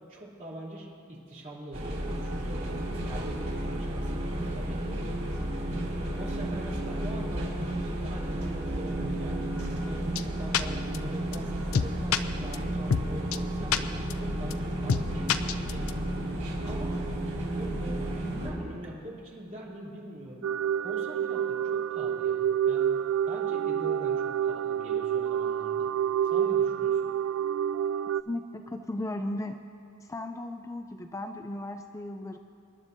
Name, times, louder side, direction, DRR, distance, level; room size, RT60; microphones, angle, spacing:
voice 1, 0.0-2.7 3.0-5.0 5.7-9.4 9.8-16.3 16.6-17.0 17.3-20.4 20.8-22.9 23.3-25.9 26.2-27.1, right 1 dB, 40° right, -6 dB, 3.1 m, -43 dB
sound 1, 1.7-18.5, right 1 dB, 85° right, 3.6 m, -32 dB
sound 2, 10.2-10.3 10.5-10.6 10.9-11.0 11.3-11.4 11.7-12.2 12.5-12.6 12.9-13.0 13.3-13.4 13.7-13.8 14.1-14.2 14.5-14.6 14.9-15.0 15.3-15.9, left 7 dB, 90° left, 0.5 m, -25 dB
sound 3, 20.4-28.2, right 9 dB, 65° right, 0.3 m, -28 dB
voice 2, 28.3-29.6 30.0-32.4, left 1 dB, 15° left, 6 dB, 0.4 m, -36 dB
26.5 x 11.0 x 2.7 m, 2.6 s
head